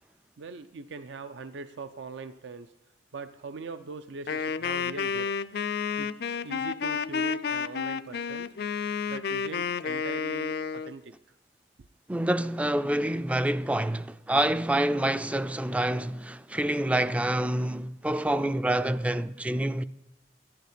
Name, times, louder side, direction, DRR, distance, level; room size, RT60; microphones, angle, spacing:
voice 1, 0.4-2.7 3.1-5.3 6.0-8.5 9.1-11.1, right 4 dB, 75° right, 0.5 m, -41 dB
Wind instrument woodwind instrument, 4.3-10.9, left 6 dB, 60° left, 0.4 m, -31 dB
voice 2, 12.1-19.8, right 1 dB, 5° right, 0.3 m, -27 dB
11.0 x 11.0 x 5.0 m
head